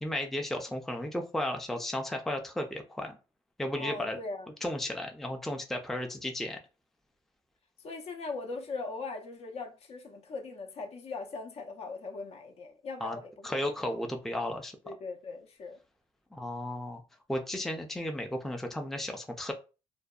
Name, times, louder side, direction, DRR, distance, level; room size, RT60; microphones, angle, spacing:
voice 1, 0.0-3.2 3.6-4.2 4.6-6.6 13.0-13.2 13.4-14.7 16.3-17.0 17.3-19.5, left 1 dB, 5° left, 0.4 m, -34 dB
voice 2, 3.8-4.5 7.8-13.5 14.8-15.8, left 3 dB, 55° left, 0.6 m, -40 dB
2.5 x 2.1 x 2.3 m
cardioid pair, 85°, 12 cm